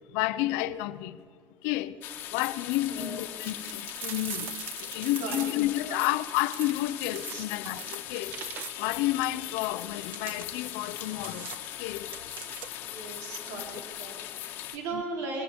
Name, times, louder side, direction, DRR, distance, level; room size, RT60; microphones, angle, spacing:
voice 1, 0.1-1.2 1.6-2.0 2.3-8.4 8.7-12.1 13.5-13.8 14.9-15.0, left 15 dB, 80° left, 0.8 m, -31 dB
sound 1, 2.0-14.8, left 13 dB, 50° left, 1.6 m, -40 dB
voice 2, 2.9-3.3 5.0-5.5 5.9-6.0 7.3-7.4 12.8-15.4, right 3 dB, 60° right, 4.8 m, -38 dB
sound 2, 3.4-5.8 6.4-9.0 9.9-12.9, right 10 dB, 45° right, 0.7 m, -43 dB
21.0 x 21.0 x 7.1 m
cardioid pair, 175°, 5 cm